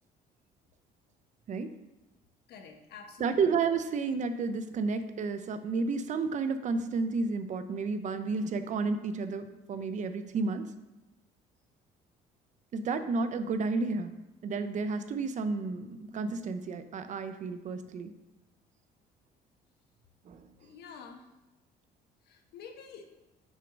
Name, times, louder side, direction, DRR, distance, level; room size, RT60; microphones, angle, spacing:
voice 1, 2.5-3.4 20.6-21.2 22.3-23.1, left 6 dB, 70° left, 4 dB, 1.1 m, -48 dB
voice 2, 3.2-10.7 12.7-14.1 14.4-18.1 20.3-20.5, right 4 dB, 45° right, 10 dB, 0.6 m, -31 dB
6.3 x 4.6 x 5.2 m, 1.0 s
cardioid pair, 110°, 17 cm